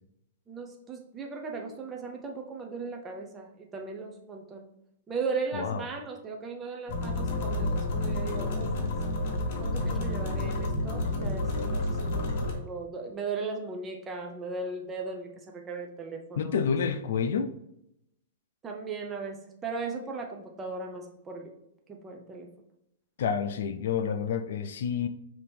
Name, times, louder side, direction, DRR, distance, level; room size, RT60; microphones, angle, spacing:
voice 1, 0.5-4.6 5.1-8.9 9.6-12.2 12.5-16.6 18.6-21.5 21.9-22.5, right 4 dB, 15° right, 0.6 m, -37 dB
voice 2, 5.5-5.8 16.4-17.5 23.2-25.1, left 6 dB, 70° left, 0.4 m, -29 dB
sound 1, 6.9-12.5, left 2 dB, 50° left, 1.0 m, -30 dB
5.4 x 2.8 x 3.4 m
hypercardioid pair, 155°, 0 cm